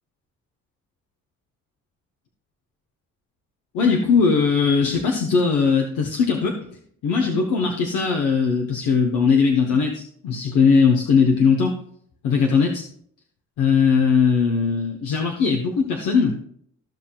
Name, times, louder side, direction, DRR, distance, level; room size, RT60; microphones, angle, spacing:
voice 1, 3.7-6.7 7.0-11.8 12.2-12.8 13.6-16.4, left 5 dB, 90° left, 2 dB, 1.2 m, -19 dB
15.0 x 5.8 x 2.4 m, 0.65 s
cardioid pair, 90°, 30 cm